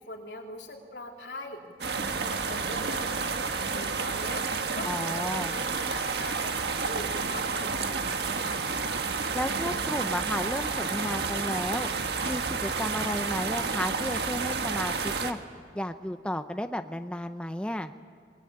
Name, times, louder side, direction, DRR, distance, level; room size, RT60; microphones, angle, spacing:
voice 1, 0.0-1.6 2.0-4.4 4.7-8.6, left 2 dB, 75° left, 0 dB, 3.6 m, -42 dB
sound 1, 1.8-15.3, right 4 dB, 65° right, 1.5 m, -30 dB
voice 2, 4.9-5.5 9.3-11.9 12.3-15.4 15.7-17.9, left 1 dB, 5° left, 8 dB, 0.6 m, -33 dB
26.0 x 22.0 x 8.7 m, 2.3 s
head